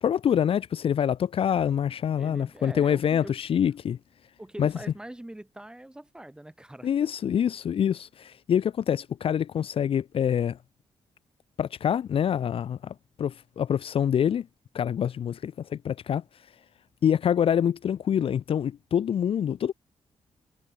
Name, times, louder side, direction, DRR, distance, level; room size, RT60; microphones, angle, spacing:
voice 1, 0.0-4.0 4.6-4.7 6.8-10.6 11.6-14.5 14.7-16.2 17.0-19.7, left 9 dB, 55° left, 0.7 m, -26 dB
voice 2, 2.2-3.3 4.4-6.9, right 1 dB, 5° right, 3.3 m, -43 dB
wide cardioid pair, 150°, 11 cm